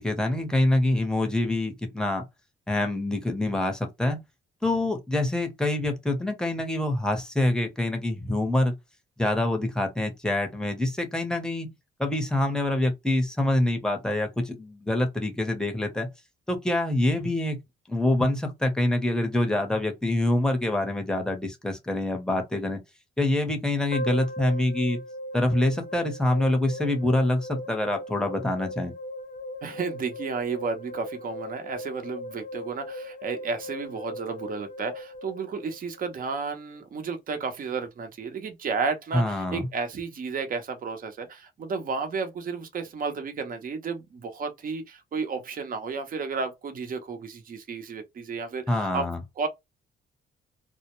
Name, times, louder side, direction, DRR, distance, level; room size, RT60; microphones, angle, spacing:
voice 1, 0.0-2.2 2.7-4.2 4.6-8.7 9.2-11.7 12.0-16.1 16.5-17.6 17.9-22.8 23.2-25.0 25.3-28.9 39.1-39.7 48.7-49.2, left 1 dB, 5° left, 0.7 m, -25 dB
sound 1, 23.9-36.1, left 1 dB, 45° left, 0.6 m, -38 dB
voice 2, 29.6-49.1 49.4-49.5, right 5 dB, 45° right, 0.7 m, -32 dB
2.1 x 2.1 x 2.9 m
cardioid pair, 90°, 20 cm